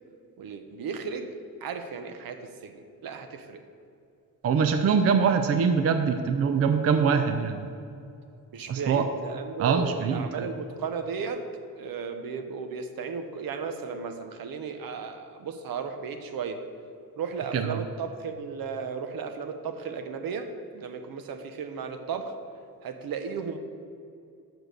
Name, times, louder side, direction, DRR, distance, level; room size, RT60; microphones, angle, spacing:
voice 1, 0.4-3.6 8.5-11.4 11.8-16.6 17.2-22.3 22.8-23.6, right 5 dB, 70° right, 7 dB, 0.9 m, -35 dB
voice 2, 4.4-7.7 8.7-9.0 9.6-10.5 17.5-17.8, right 6 dB, 40° right, 7 dB, 0.5 m, -23 dB
7.0 x 6.0 x 6.5 m, 2.5 s
cardioid pair, 140°, 36 cm